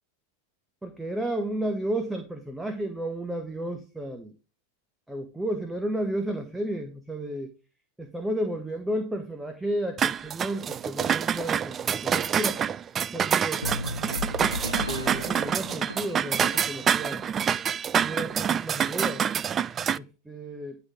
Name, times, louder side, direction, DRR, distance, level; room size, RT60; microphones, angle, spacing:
voice 1, 0.8-4.3 5.1-7.5 8.0-12.7 13.1-13.6 14.9-17.2 17.9-19.2 19.9-20.8, right 1 dB, 5° right, 6 dB, 1.1 m, -32 dB
sound 1, 10.0-20.0, right 8 dB, 25° right, 0.4 m, -27 dB
sound 2, 13.6-17.1, left 2 dB, 90° left, 0.8 m, -35 dB
11.0 x 4.1 x 5.1 m, 0.32 s
figure-of-eight pair, 90°, 0 cm